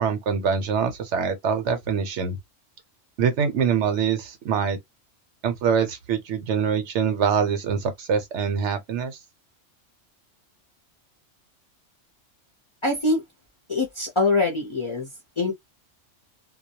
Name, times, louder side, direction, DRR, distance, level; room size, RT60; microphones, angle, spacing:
voice 1, 0.0-2.4 3.2-4.8 5.4-9.2, right 6 dB, 70° right, 0.9 m, -24 dB
voice 2, 12.8-13.2 13.7-15.1 15.4-15.5, left 2 dB, 35° left, 0.5 m, -23 dB
2.2 x 2.1 x 2.7 m
omnidirectional pair, 1.3 m